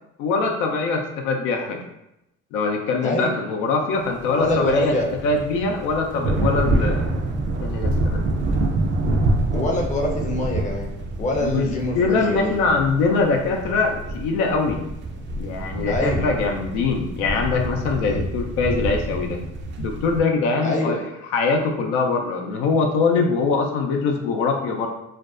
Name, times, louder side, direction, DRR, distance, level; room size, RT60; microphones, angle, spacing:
voice 1, 0.2-1.8 2.5-4.9 5.2-7.1 7.6-8.4 11.4-11.7 11.9-14.8 15.4-19.4 19.8-21.0 21.2-24.9, left 4 dB, 70° left, 1 dB, 0.5 m, -23 dB
voice 2, 3.0-3.4 4.3-5.1 9.5-10.9 11.2-12.5 15.9-16.3 18.0-18.2 20.6-21.0, left 1 dB, 20° left, 0 dB, 0.5 m, -25 dB
sound 1, 4.2-20.2, right 2 dB, 30° right, 0.4 m, -26 dB
2.5 x 2.1 x 2.4 m, 0.88 s
hypercardioid pair, 75°, 38 cm